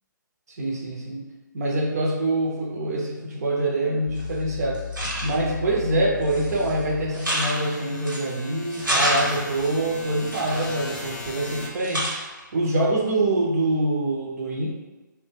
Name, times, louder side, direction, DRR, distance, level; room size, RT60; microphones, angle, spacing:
voice 1, 0.5-1.3 1.5-4.8 5.2-14.7, right 1 dB, 50° right, -2 dB, 0.5 m, -25 dB
sound 1, 4.1-11.7, left 4 dB, 20° left, 0.4 m, -37 dB
sound 2, 4.2-4.3 4.7-5.5 6.2-6.7 7.1-8.3 8.7-9.7 10.3-11.5 11.8-12.4, right 1 dB, 75° right, 1.1 m, -28 dB
2.1 x 2.1 x 3.1 m, 1.1 s
figure-of-eight pair, 145°, 11 cm